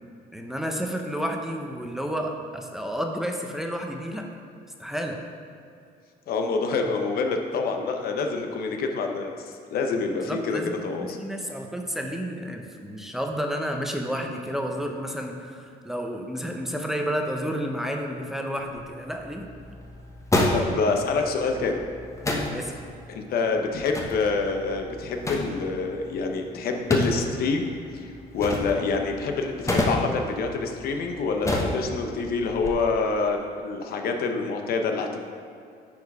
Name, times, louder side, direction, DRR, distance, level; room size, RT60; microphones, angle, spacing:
voice 1, 0.3-4.3 4.8-5.2 10.3-19.5 22.5-22.7, equal, ahead, 2 dB, 0.8 m, -31 dB
voice 2, 6.3-11.2 20.5-21.8 23.1-27.7 27.9-35.2, left 4 dB, 65° left, 4 dB, 0.9 m, -27 dB
sound 1, 18.6-32.7, left 1 dB, 20° left, 1.1 m, -31 dB
9.5 x 4.8 x 4.8 m, 2.4 s
cardioid pair, 110°, 17 cm